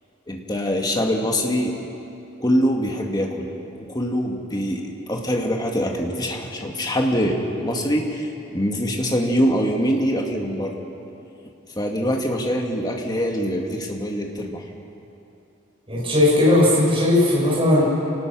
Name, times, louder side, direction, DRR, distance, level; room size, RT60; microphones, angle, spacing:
voice 1, 0.3-1.7 2.4-3.5 3.9-10.8 11.8-14.6, equal, 20° left, 1 dB, 2.1 m, -24 dB
voice 2, 15.9-17.8, left 1 dB, 30° right, -6 dB, 6.9 m, -17 dB
27.5 x 19.0 x 6.2 m, 2.8 s
head